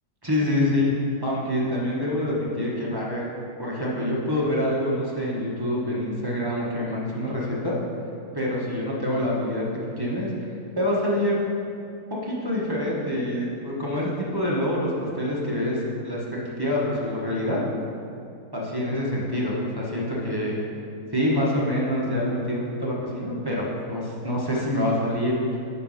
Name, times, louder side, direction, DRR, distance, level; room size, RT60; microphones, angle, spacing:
voice 1, 0.2-0.9 1.2-3.2 3.6-7.8 8.3-9.6 10.0-10.3 10.8-11.4 12.2-16.2 16.6-17.6 18.5-20.6 21.1-25.4, left 1 dB, 15° right, -5 dB, 0.8 m, -26 dB
9.7 x 3.8 x 5.6 m, 2.5 s
omnidirectional pair, 1.8 m